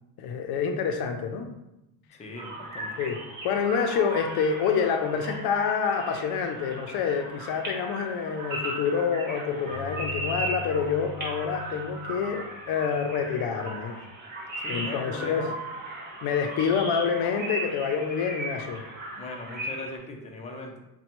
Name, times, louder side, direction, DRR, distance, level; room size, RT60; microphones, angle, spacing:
voice 1, 0.2-1.5 3.0-3.2 3.4-14.0 14.7-15.5 16.2-18.8, left 6 dB, 75° left, 5 dB, 0.5 m, -27 dB
voice 2, 2.1-2.9 14.6-15.5 19.2-20.7, left 2 dB, 20° left, 0 dB, 0.5 m, -39 dB
sound 1, 2.3-20.0, right 2 dB, 25° right, 1.4 m, -37 dB
Bowed string instrument, 9.6-12.7 13.2-13.3, left 6 dB, 55° right, 0.9 m, -42 dB
5.2 x 2.2 x 2.9 m, 0.90 s
cardioid pair, 135°, 39 cm